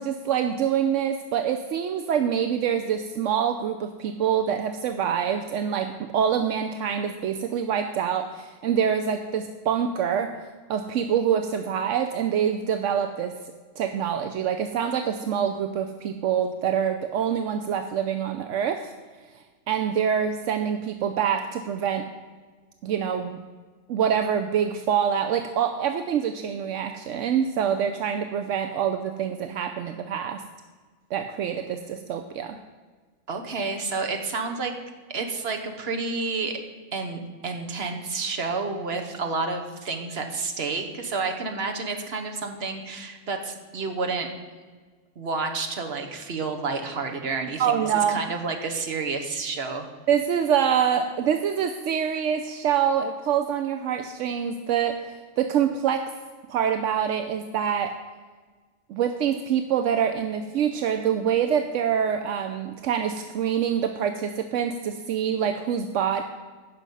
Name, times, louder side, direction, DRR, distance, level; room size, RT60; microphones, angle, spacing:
voice 1, 0.0-13.3 13.8-18.9 19.7-22.1 22.8-23.4 23.9-30.4 31.1-32.6 47.6-48.2 50.1-56.1 56.5-57.9 58.9-66.2, right 8 dB, 80° right, 7 dB, 1.0 m, -25 dB
voice 2, 33.3-34.7 35.1-36.6 36.9-44.3 45.2-47.8 48.1-49.9, right 4 dB, 55° right, 4 dB, 1.4 m, -30 dB
15.5 x 6.1 x 5.4 m, 1.4 s
omnidirectional pair, 1.3 m